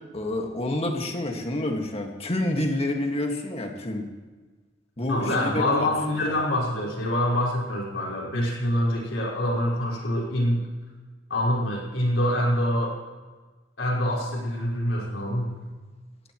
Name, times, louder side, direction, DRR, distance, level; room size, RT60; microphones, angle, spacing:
voice 1, 0.1-4.1 5.0-5.9 6.2-6.3, left 1 dB, 30° left, 2 dB, 1.9 m, -28 dB
voice 2, 5.1-10.6 11.3-13.0 13.8-15.5, left 1 dB, 70° left, -3 dB, 5.1 m, -25 dB
18.5 x 15.5 x 3.2 m, 1.3 s
head